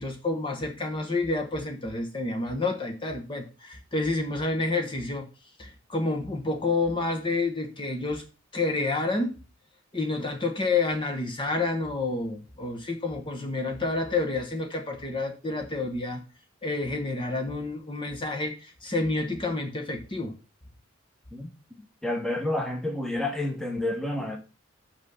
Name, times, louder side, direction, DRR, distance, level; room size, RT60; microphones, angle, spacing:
voice 1, 0.0-5.3 5.6-8.2 8.5-9.3 9.9-16.2 16.6-20.3, left 3 dB, 25° left, 1.1 m, -29 dB
voice 2, 22.0-24.4, left 1 dB, ahead, 1.1 m, -29 dB
5.9 x 5.6 x 6.9 m
head